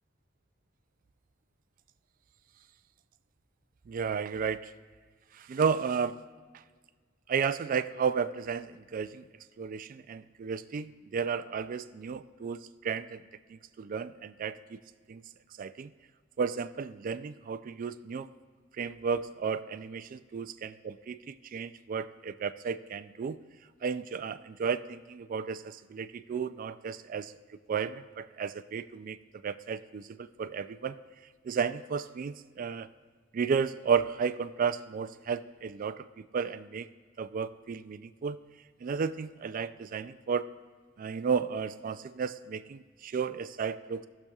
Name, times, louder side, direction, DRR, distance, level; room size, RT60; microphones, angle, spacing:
voice 1, 3.9-4.7 5.3-6.2 7.3-9.2 9.6-13.2 13.5-14.8 15.1-15.2 15.6-15.9 16.4-18.3 18.8-23.4 23.8-27.3 27.7-29.2 29.4-31.0 31.4-32.9 33.3-36.0 36.3-36.9 37.2-38.4 38.8-40.5 41.0-44.1, right 6 dB, 45° right, 13 dB, 0.3 m, -33 dB
17.5 x 6.7 x 2.4 m, 1.6 s
head